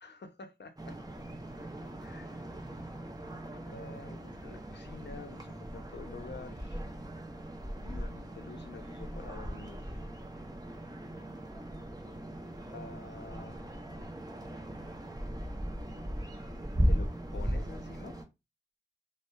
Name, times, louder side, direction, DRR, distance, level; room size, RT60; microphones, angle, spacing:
voice 1, 0.0-1.0 2.0-2.5 3.5-6.8 7.8-10.0 12.7-13.7 16.9-18.2, left 4 dB, 60° left, 0.6 m, -48 dB
sound 1, 0.8-18.2, equal, 20° right, 0.5 m, -38 dB
2.7 x 2.1 x 2.2 m
wide cardioid pair, 40°, 20 cm